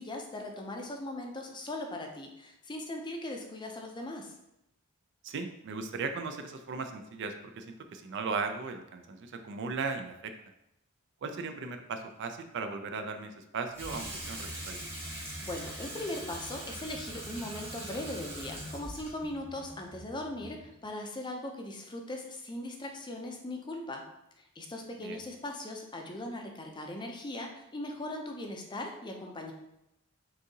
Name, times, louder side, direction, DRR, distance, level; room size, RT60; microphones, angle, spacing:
voice 1, 0.0-4.3 15.4-24.0 24.4-29.5, left 1 dB, 20° left, 2 dB, 0.5 m, -39 dB
voice 2, 5.2-10.3 11.2-14.9 25.0-25.2, right 4 dB, 55° right, 7 dB, 0.4 m, -37 dB
Water tap faucet / Sink (filling or washing), 13.7-20.8, right 1 dB, 10° right, 0.9 m, -42 dB
6.2 x 2.7 x 2.7 m, 0.84 s
head